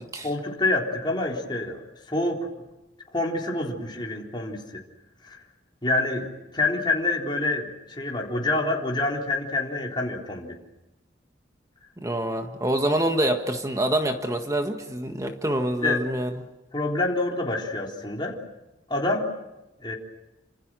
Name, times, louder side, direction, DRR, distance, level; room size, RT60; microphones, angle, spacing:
voice 1, 0.2-1.8 2.1-2.5 3.1-4.8 5.2-5.4 5.8-10.6 15.8-16.1 16.7-18.4 18.9-19.3 19.8-19.9, left 2 dB, 25° left, -1 dB, 3.8 m, -27 dB
voice 2, 12.0-16.3, right 1 dB, 20° right, 5 dB, 1.6 m, -26 dB
28.5 x 26.0 x 6.3 m, 1.0 s
head